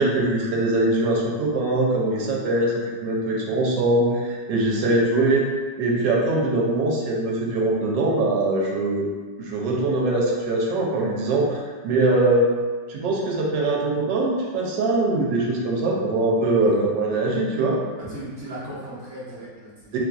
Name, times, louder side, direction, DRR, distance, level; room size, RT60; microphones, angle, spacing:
voice 1, 0.0-2.7 3.0-5.5 5.8-9.0 9.4-12.5 12.9-17.8 19.9-20.0, right 2 dB, 90° right, -2 dB, 1.3 m, -22 dB
voice 2, 18.0-19.9, right 1 dB, 55° right, -8 dB, 1.0 m, -37 dB
2.9 x 2.4 x 2.3 m, 1.4 s
omnidirectional pair, 1.9 m